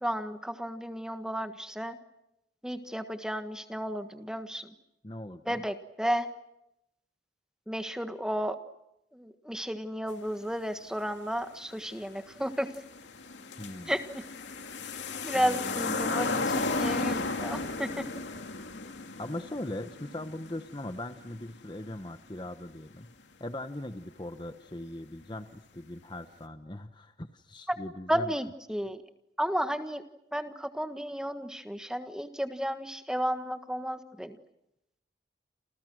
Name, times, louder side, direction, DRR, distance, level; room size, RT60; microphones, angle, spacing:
voice 1, 0.0-2.0 2.6-4.7 5.5-6.3 7.7-8.6 9.1-12.7 13.9-14.0 15.2-18.0 27.7-27.8 28.1-29.0 29.4-30.0 30.3-34.4, equal, 5° right, 8 dB, 1.5 m, -33 dB
voice 2, 5.0-5.7 13.6-13.9 15.3-16.6 19.2-23.1 23.4-28.3, left 1 dB, 25° left, 9 dB, 1.0 m, -40 dB
sound 1, 11.9-12.0 12.3-22.1 22.4-22.5, left 3 dB, 85° left, 2.6 m, -34 dB
29.5 x 28.5 x 6.3 m, 0.84 s
head